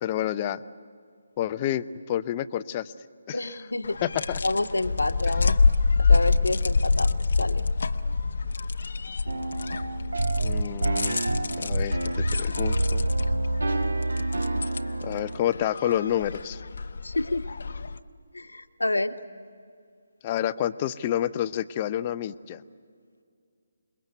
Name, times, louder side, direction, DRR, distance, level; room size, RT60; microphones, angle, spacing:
voice 1, 0.0-0.6 1.4-2.9 3.3-3.6 4.0-4.4 5.3-5.4 10.4-11.2 11.6-12.0 12.4-13.0 15.0-16.6 20.2-22.6, left 11 dB, 25° left, 14 dB, 0.7 m, -29 dB
voice 2, 3.3-4.0 4.4-5.5 6.1-7.6 17.0-17.4 18.3-19.1, left 2 dB, 80° left, 8 dB, 1.4 m, -28 dB
sound 1, 3.8-18.0, left 4 dB, 60° left, 0.9 m, -27 dB
sound 2, 9.3-15.4, right 2 dB, 75° right, 1.2 m, -27 dB
27.5 x 21.5 x 8.1 m, 2.3 s
figure-of-eight pair, 145°, 0 cm